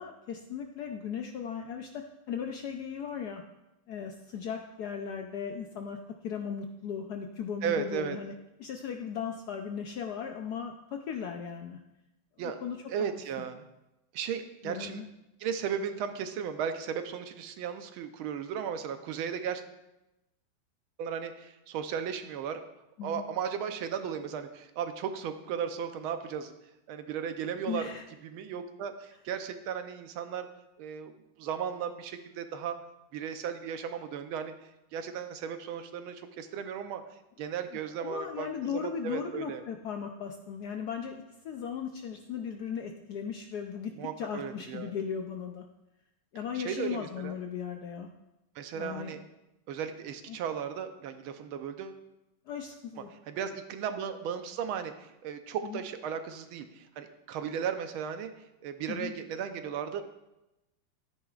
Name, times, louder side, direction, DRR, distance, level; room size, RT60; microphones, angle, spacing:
voice 1, 0.0-3.4 3.9-6.0 6.2-8.3 8.6-11.8 12.4-12.8 14.6-15.1 23.0-23.2 27.7-28.0 37.7-41.1 41.4-43.9 44.2-45.6 46.3-48.1 48.7-49.2 50.3-50.4 52.5-53.1 55.6-55.8 58.9-59.1, left 7 dB, 70° left, 4 dB, 1.0 m, -37 dB
voice 2, 7.6-8.2 12.4-12.6 12.9-13.7 14.1-15.0 15.4-19.6 21.0-22.6 23.0-26.5 26.9-27.8 28.2-30.5 30.8-32.8 33.1-34.5 34.9-37.0 37.4-39.6 44.0-44.9 46.5-47.3 48.5-49.2 49.7-52.0 53.1-58.3 58.6-60.0, right 7 dB, 85° right, 8 dB, 1.6 m, -35 dB
12.5 x 9.9 x 2.4 m, 0.93 s
omnidirectional pair, 2.2 m